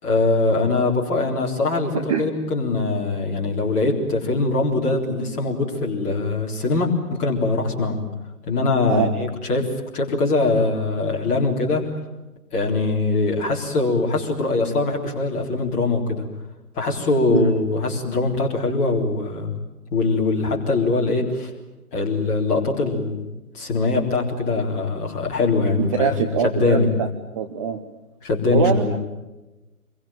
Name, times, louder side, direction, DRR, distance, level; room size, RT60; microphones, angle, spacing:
voice 1, 0.0-8.0 8.5-11.8 12.5-16.2 16.8-19.5 19.9-21.5 21.9-23.3 23.5-26.1 26.4-26.9 28.2-29.0, left 3 dB, 15° left, -1 dB, 3.8 m, -22 dB
voice 2, 25.8-27.1 27.4-27.8 28.5-29.0, right 7 dB, 20° right, 5 dB, 1.0 m, -23 dB
26.5 x 23.0 x 9.1 m, 1.0 s
figure-of-eight pair, 135°, 45 cm